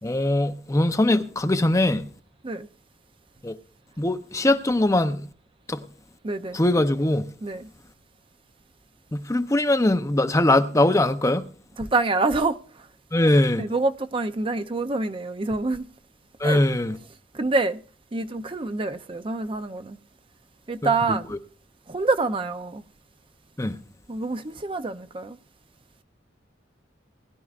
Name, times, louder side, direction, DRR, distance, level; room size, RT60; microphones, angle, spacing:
voice 1, 0.0-2.0 3.4-3.6 4.0-5.3 5.7-5.8 6.5-7.3 9.1-11.5 13.1-13.6 16.4-17.0 20.8-21.2 23.6-23.8, left 1 dB, 15° left, 0.6 m, -21 dB
voice 2, 6.2-6.6 7.4-7.7 11.8-12.9 13.6-15.9 16.4-16.6 17.3-17.8 18.1-20.0 20.7-21.3 21.9-22.8 24.1-25.4, right 3 dB, 30° right, 0.5 m, -26 dB
20.0 x 11.0 x 2.4 m
head